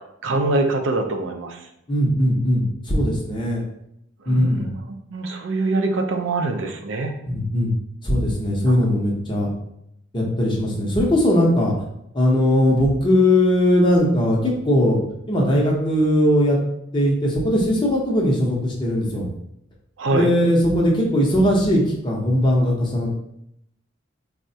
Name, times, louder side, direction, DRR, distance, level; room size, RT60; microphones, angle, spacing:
voice 1, 0.2-1.6 4.3-4.7 5.1-7.1 20.0-20.3, right 2 dB, 70° right, 4 dB, 0.4 m, -23 dB
voice 2, 1.9-3.6 4.3-4.7 7.3-7.7 8.0-9.5 10.1-11.7 12.1-15.0 15.3-16.6 16.9-19.2 20.1-23.1, left 1 dB, 25° left, -2 dB, 0.6 m, -19 dB
4.4 x 2.1 x 2.6 m, 0.77 s
head